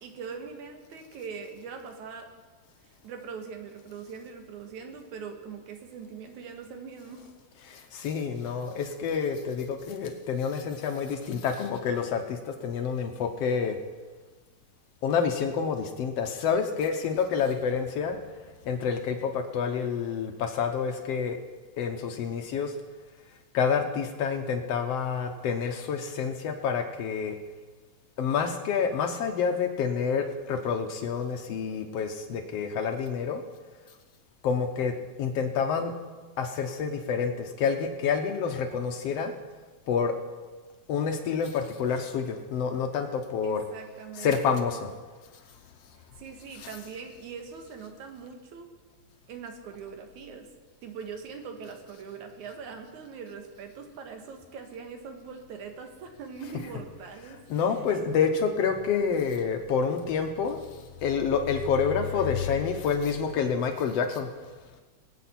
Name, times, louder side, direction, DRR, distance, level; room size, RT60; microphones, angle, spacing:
voice 1, 0.0-2.3 3.0-7.3 43.4-44.4 46.2-48.7 49.3-50.5 50.8-57.4 57.9-58.0, right 5 dB, 90° right, 4 dB, 2.7 m, -42 dB
voice 2, 7.7-13.8 15.0-18.2 18.7-21.4 21.8-22.7 23.5-27.4 28.2-33.4 34.4-34.9 35.2-35.9 36.4-39.3 39.9-40.1 40.9-43.6 44.2-44.9 57.5-60.7 61.0-64.3, left 6 dB, 70° left, 5 dB, 1.8 m, -28 dB
23.5 x 8.2 x 4.3 m, 1.3 s
omnidirectional pair, 3.3 m